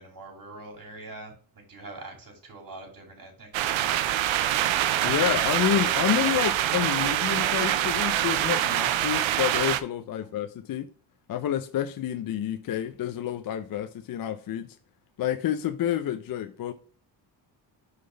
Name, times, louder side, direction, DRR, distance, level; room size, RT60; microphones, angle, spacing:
voice 1, 0.0-4.1 10.1-10.3, right 2 dB, 40° right, 2.7 m, -44 dB
sound 1, 3.5-9.8, right 12 dB, 70° right, 0.7 m, -25 dB
voice 2, 5.0-10.9 11.3-14.7 15.2-16.7, left 11 dB, 45° left, 0.5 m, -29 dB
5.1 x 4.0 x 5.2 m
cardioid pair, 80°, 49 cm